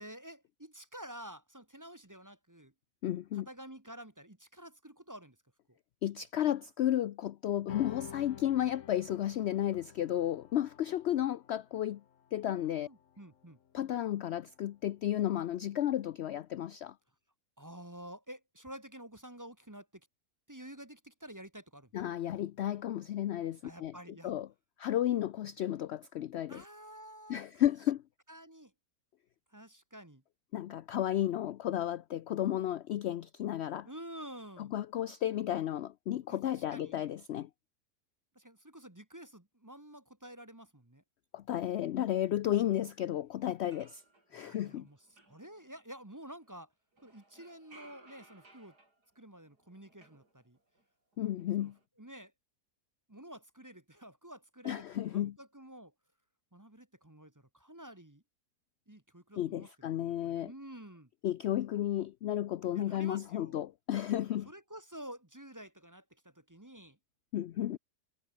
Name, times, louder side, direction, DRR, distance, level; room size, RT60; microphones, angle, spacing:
voice 1, 0.0-2.7 3.3-5.4 12.4-13.6 17.6-20.0 20.5-21.9 23.6-24.3 26.5-27.6 28.3-28.7 29.5-30.2 33.8-34.7 36.3-37.0 38.3-41.0 44.3-45.0 45.3-46.7 47.0-48.7 49.1-50.6 51.6-51.7 52.0-52.3 53.1-54.9 55.1-55.9 56.5-58.2 58.9-61.1 62.7-63.6 64.4-67.0, right 1 dB, 10° right, 1.4 m, -50 dB
voice 2, 3.0-3.5 6.0-12.0 12.3-12.9 13.7-16.9 21.9-23.9 24.2-24.5 24.8-26.6 27.3-28.0 30.5-33.9 34.6-37.5 41.3-44.0 44.3-44.9 51.2-51.7 54.6-55.4 59.4-60.5 61.2-64.5 67.3-67.8, left 12 dB, 70° left, 0.6 m, -33 dB
sound 1, 7.7-14.4, left 8 dB, 55° left, 1.4 m, -50 dB
sound 2, 43.5-46.6 46.9-50.8 51.1-51.9, right 2 dB, 85° right, 7.7 m, -62 dB
omnidirectional pair, 1.7 m